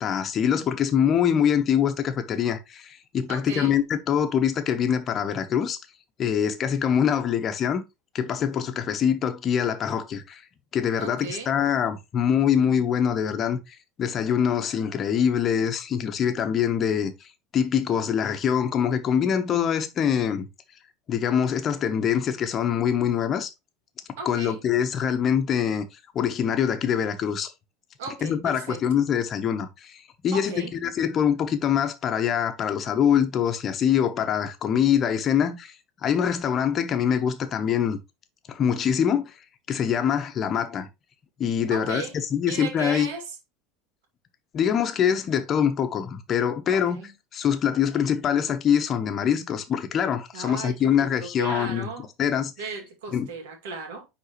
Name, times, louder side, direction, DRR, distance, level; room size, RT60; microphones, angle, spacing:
voice 1, 0.0-5.8 6.2-7.8 8.1-10.4 10.7-17.1 17.5-20.5 21.1-23.5 24.2-25.8 26.1-27.5 28.2-35.7 36.0-38.0 38.5-39.3 39.7-40.9 41.4-42.0 42.3-43.1 44.5-47.0 47.3-51.9 52.2-52.5 53.1-53.3, left 8 dB, 40° left, 1.0 m, -24 dB
voice 2, 3.3-3.8 11.0-11.5 24.2-24.6 28.0-28.8 30.3-30.7 41.7-42.2 42.5-43.4 46.7-47.1 50.3-52.1 52.6-54.1, right 4 dB, 70° right, 2.2 m, -36 dB
9.6 x 3.7 x 3.0 m
hypercardioid pair, 85°, 0 cm